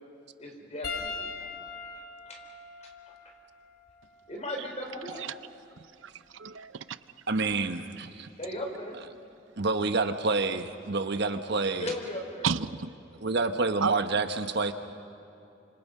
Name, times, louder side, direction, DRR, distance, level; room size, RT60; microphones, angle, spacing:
voice 1, 0.4-1.7 2.3-2.4 2.8-2.9 4.3-5.2 8.4-8.9 11.8-12.5, left 1 dB, 35° left, 1 dB, 4.7 m, -37 dB
Piano, 0.8-5.5 6.4-6.6 8.6-8.7, left 4 dB, 55° left, 3.3 m, -42 dB
voice 2, 6.0-7.0 12.4-12.9 13.8-14.0, right 6 dB, 85° right, 14 dB, 0.6 m, -31 dB
voice 3, 7.3-8.3 9.6-11.9 13.2-14.7, right 3 dB, 60° right, 8 dB, 1.1 m, -28 dB
29.0 x 26.5 x 5.5 m, 2.8 s
head